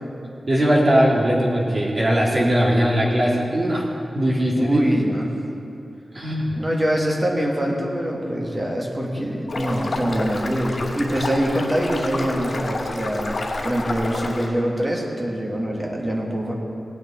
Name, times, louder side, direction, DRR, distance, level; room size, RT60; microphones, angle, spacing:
voice 1, 0.5-3.8 4.1-4.8 6.1-6.6, equal, 45° right, -4 dB, 2.5 m, -19 dB
voice 2, 4.6-5.3 6.6-13.4 13.6-16.5, equal, 25° right, -1 dB, 1.9 m, -24 dB
sound 1, 9.5-14.5, left 2 dB, 55° left, 2.6 m, -29 dB
18.0 x 9.1 x 4.3 m, 2.7 s
wide cardioid pair, 100°, 0 cm